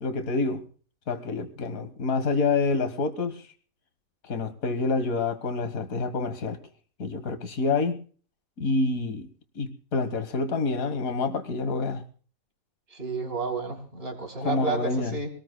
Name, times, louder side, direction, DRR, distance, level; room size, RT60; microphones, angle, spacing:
voice 1, 0.0-0.6 1.1-3.4 4.3-6.6 7.0-8.0 8.6-9.3 9.6-12.0 14.4-15.2, left 3 dB, 70° left, 8 dB, 1.9 m, -27 dB
voice 2, 12.9-15.3, right 4 dB, 40° right, 3 dB, 3.5 m, -31 dB
24.5 x 18.5 x 2.2 m, 0.42 s
omnidirectional pair, 1.5 m